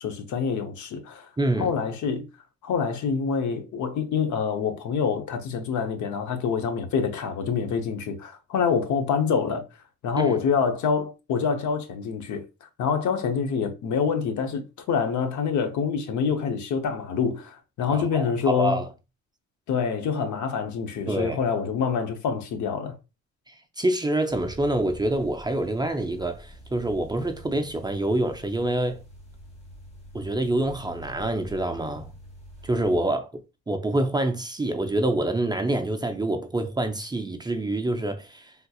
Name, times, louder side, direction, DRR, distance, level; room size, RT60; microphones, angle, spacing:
voice 1, 0.0-1.3 1.6-2.3 2.6-9.6 10.0-18.8 19.7-23.0, left 6 dB, 70° left, 0.8 m, -26 dB
voice 2, 1.4-1.7 10.2-10.4 17.9-18.9 21.1-21.4 23.5-29.0 30.1-32.1 32.6-33.3 33.7-38.5, right 1 dB, 15° right, 0.5 m, -26 dB
sound 1, 24.3-33.0, equal, 20° left, 1.1 m, -46 dB
3.5 x 2.8 x 2.3 m
cardioid pair, 90°, 30 cm